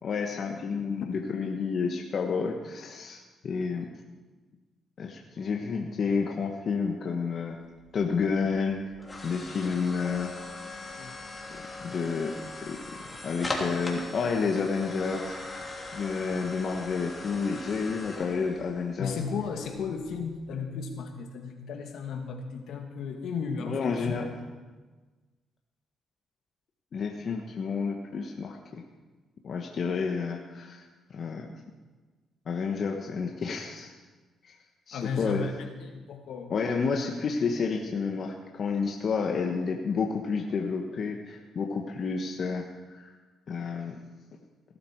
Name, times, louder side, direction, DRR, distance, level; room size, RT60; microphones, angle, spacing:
voice 1, 0.0-3.9 5.0-7.6 7.9-8.8 9.2-10.3 11.0-11.1 11.5-12.3 12.7-15.6 15.9-19.1 23.6-24.2 26.9-28.8 29.4-30.8 31.1-31.5 32.5-33.9 34.4-34.5 34.9-35.5 36.5-43.1 43.5-44.0, left 5 dB, 55° left, 1 dB, 1.3 m, -30 dB
sound 1, 7.5-20.6, left 2 dB, 20° left, 3.3 m, -40 dB
voice 2, 19.0-24.1 34.9-36.5, left 5 dB, 75° left, 3 dB, 2.2 m, -34 dB
17.5 x 12.5 x 4.7 m, 1.3 s
cardioid pair, 90°, 0 cm